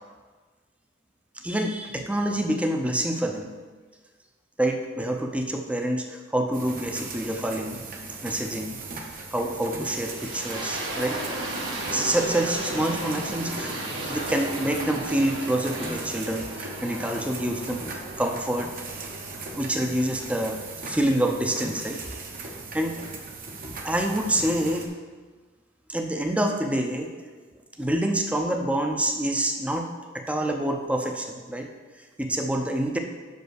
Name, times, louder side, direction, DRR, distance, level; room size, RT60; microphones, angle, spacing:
voice 1, 1.4-3.5 4.6-7.8 8.2-8.8 9.3-11.2 11.9-18.7 19.6-22.0 22.4-23.0 23.8-24.9 25.9-27.1 27.8-29.9 30.1-31.7 32.0-33.0, right 1 dB, 5° right, 4 dB, 0.6 m, -27 dB
sound 1, 6.5-24.9, right 3 dB, 45° right, 0.9 m, -38 dB
sound 2, 9.9-20.8, right 1 dB, 75° right, 1.6 m, -35 dB
5.6 x 5.4 x 6.3 m, 1.4 s
head